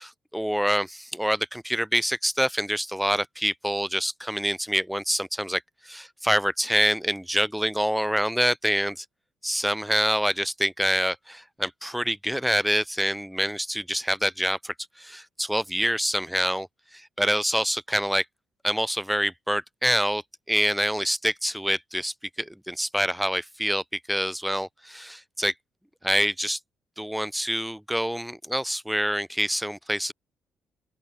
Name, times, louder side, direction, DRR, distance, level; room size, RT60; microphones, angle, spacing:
voice 1, 0.0-9.1 9.4-16.7 16.9-18.3 18.6-20.2 20.5-25.5 26.0-26.6 27.0-30.1, equal, ahead, 5.3 m, -26 dB
open air
cardioid pair, 90°, 0 cm